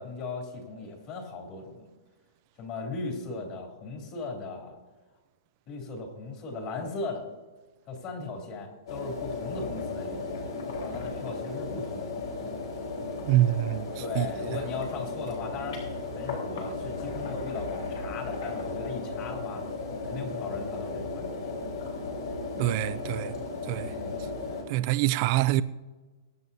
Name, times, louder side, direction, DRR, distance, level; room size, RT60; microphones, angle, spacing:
voice 1, 0.0-1.9 2.6-4.8 5.7-7.2 7.9-10.5 10.8-12.2 14.0-15.8 16.1-19.7 20.0-21.5 23.9-24.7, left 3 dB, 35° left, 3.0 m, -38 dB
sound 1, 8.9-24.6, left 3 dB, 70° left, 4.4 m, -35 dB
voice 2, 13.2-13.9 14.2-14.3 22.6-23.4 23.7-23.9 24.7-25.6, right 15 dB, 40° right, 0.5 m, -25 dB
22.5 x 9.3 x 2.8 m
hypercardioid pair, 155°, 2 cm